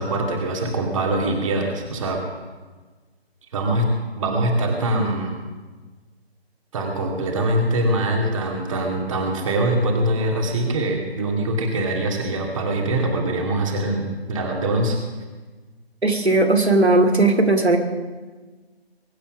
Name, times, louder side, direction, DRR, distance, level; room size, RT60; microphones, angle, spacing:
voice 1, 0.0-2.2 3.5-3.9 4.1-5.4 6.7-15.0, right 1 dB, 30° right, 1 dB, 2.6 m, -23 dB
voice 2, 16.0-17.8, right 2 dB, 90° right, 3 dB, 2.5 m, -17 dB
23.0 x 10.0 x 6.3 m, 1.3 s
figure-of-eight pair, 150°, 32 cm